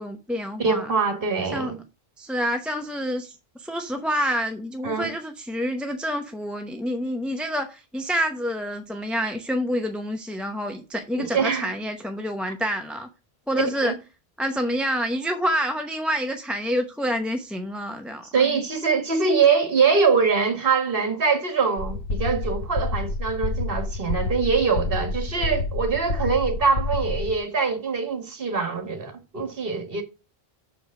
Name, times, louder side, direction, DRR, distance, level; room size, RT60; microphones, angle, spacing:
voice 1, 0.0-0.9 1.5-1.7 2.2-13.1 13.5-13.9 14.4-18.5, equal, ahead, 0.7 m, -28 dB
voice 2, 0.6-1.8 4.8-5.1 11.2-11.7 13.8-13.9 18.3-30.0, right 5 dB, 65° right, 1.8 m, -23 dB
sound 1, 21.8-27.4, left 2 dB, 85° left, 1.3 m, -28 dB
6.7 x 5.1 x 6.3 m
omnidirectional pair, 1.0 m